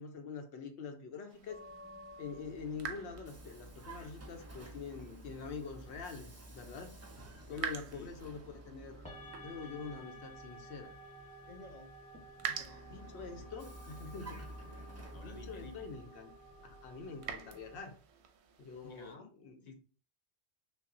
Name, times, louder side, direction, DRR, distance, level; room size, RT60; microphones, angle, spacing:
voice 1, 0.0-1.6 2.2-6.9 7.5-9.0 9.4-10.9 12.9-16.3 16.6-18.0 18.6-19.2 19.4-19.6, left 5 dB, 85° left, 1.0 m, -45 dB
sound 1, 1.3-19.2, right 7 dB, 90° right, 0.9 m, -49 dB
sound 2, 1.5-17.8, equal, 5° left, 0.9 m, -55 dB
Vehicle, 2.1-10.6 12.3-16.2, right 1 dB, 20° right, 0.4 m, -52 dB
voice 2, 7.5-8.3 11.5-11.9 12.4-13.5 13.8-14.0 15.1-15.9 18.8-19.3 19.6-19.7, left 4 dB, 50° left, 0.6 m, -54 dB
5.4 x 2.1 x 2.6 m
omnidirectional pair, 1.1 m